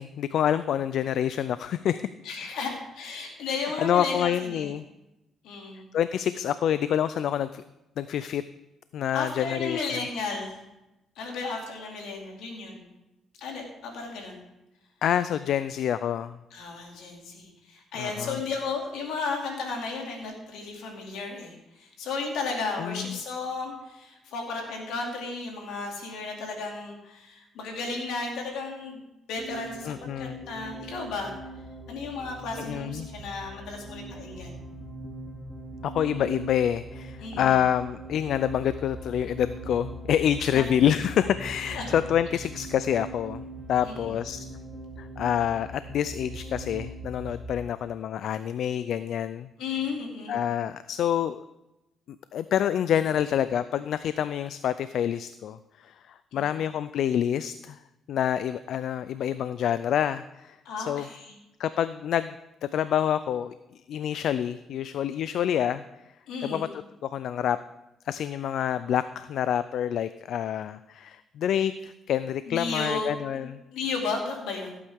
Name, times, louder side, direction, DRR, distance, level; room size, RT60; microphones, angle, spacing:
voice 1, 0.0-2.1 2.4-2.7 3.8-4.8 5.9-7.6 8.0-8.4 8.9-9.8 15.0-16.4 18.0-18.4 22.8-23.2 29.9-30.4 32.6-33.1 35.8-43.4 43.7-44.5 45.0-49.5 50.3-51.4 52.3-55.6 55.8-57.8 58.1-61.0 61.6-62.4 62.7-63.5 63.9-65.8 66.4-66.7 67.0-67.6 68.1-73.6, left 9 dB, 70° left, 14 dB, 0.3 m, -27 dB
voice 2, 2.2-4.7 5.4-5.9 9.1-10.6 11.2-12.9 13.4-14.4 16.5-29.0 29.3-31.3 31.9-34.6 37.2-37.6 40.5-40.7 41.7-41.9 42.3-42.4 43.8-44.2 49.6-50.4 56.3-56.6 60.6-61.4 66.3-66.7 72.5-74.7, left 4 dB, 90° left, 1 dB, 2.6 m, -34 dB
sound 1, 29.4-47.5, right 2 dB, ahead, 3.1 m, -41 dB
16.5 x 8.4 x 3.6 m, 0.95 s
cardioid pair, 90°, 0 cm